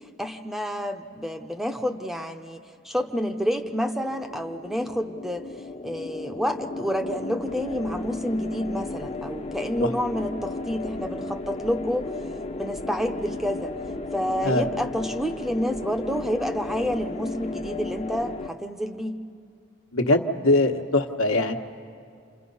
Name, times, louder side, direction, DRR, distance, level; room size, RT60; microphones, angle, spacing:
voice 1, 0.2-5.4 5.8-12.1 12.6-13.7 14.1-19.2, equal, ahead, 6 dB, 0.7 m, -29 dB
sound 1, 3.0-18.5, left 2 dB, 30° left, 0.7 m, -35 dB
voice 2, 19.9-21.6, left 2 dB, 80° left, 5 dB, 1.3 m, -22 dB
28.5 x 27.5 x 5.5 m, 2.3 s
head